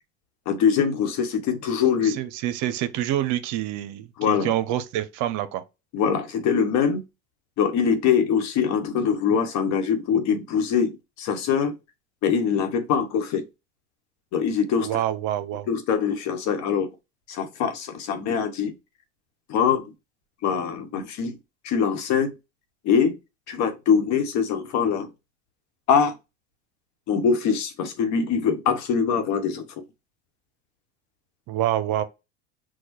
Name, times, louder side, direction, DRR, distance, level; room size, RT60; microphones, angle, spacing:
voice 1, 0.5-2.2 4.2-4.5 5.9-7.0 7.6-11.7 12.2-13.4 14.3-15.0 15.7-16.9 17.3-18.7 19.5-19.9 20.4-21.4 21.6-22.3 22.8-23.2 23.5-25.1 25.9-26.1 27.1-29.6, left 7 dB, 50° left, 1.1 m, -23 dB
voice 2, 2.0-5.6 14.8-15.7 31.5-32.0, right 12 dB, 55° right, 0.7 m, -27 dB
6.1 x 2.3 x 3.0 m
hypercardioid pair, 90°, 35 cm